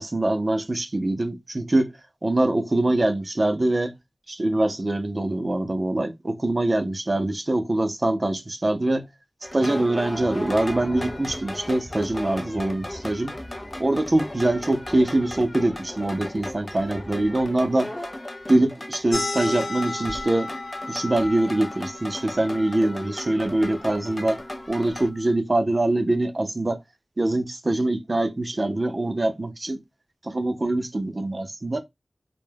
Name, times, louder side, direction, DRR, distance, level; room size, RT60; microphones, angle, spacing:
voice 1, 0.0-1.9 2.2-3.9 4.3-9.1 9.5-13.3 13.8-17.9 18.5-20.5 20.9-24.4 24.7-26.8 27.2-29.8 30.2-31.8, right 1 dB, 40° right, 0.4 m, -24 dB
sound 1, 9.4-25.1, left 1 dB, 30° left, 0.4 m, -36 dB
sound 2, 19.1-24.3, left 2 dB, 85° left, 0.5 m, -34 dB
2.2 x 2.1 x 3.2 m
wide cardioid pair, 75°, 0 cm